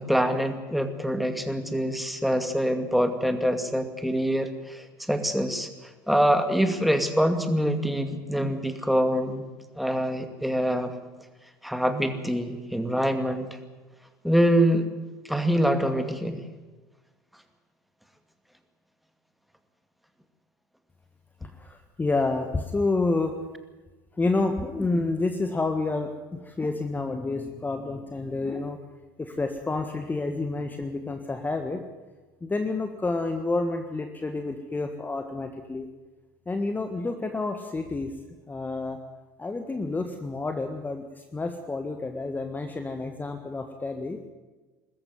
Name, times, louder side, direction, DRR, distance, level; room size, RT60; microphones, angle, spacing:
voice 1, 0.0-9.4 9.8-10.9 11.6-13.6 14.2-14.9 15.2-16.4, equal, ahead, 7 dB, 2.4 m, -25 dB
voice 2, 21.4-23.4 24.1-28.8 29.2-31.8 32.4-35.9 36.5-38.1 38.5-39.0 39.4-44.2, left 3 dB, 15° left, 6 dB, 1.6 m, -29 dB
22.0 x 13.5 x 9.4 m, 1.2 s
hypercardioid pair, 70°, 11 cm